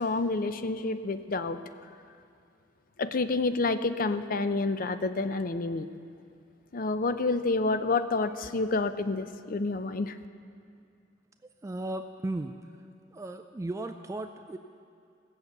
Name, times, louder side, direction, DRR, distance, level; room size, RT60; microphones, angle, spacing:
voice 1, 0.0-1.6 3.0-5.9 6.7-10.2, left 3 dB, 45° left, 11 dB, 0.5 m, -29 dB
voice 2, 11.4-12.5 13.1-14.6, right 2 dB, 15° right, 7 dB, 0.3 m, -36 dB
16.5 x 6.8 x 8.0 m, 2.4 s
head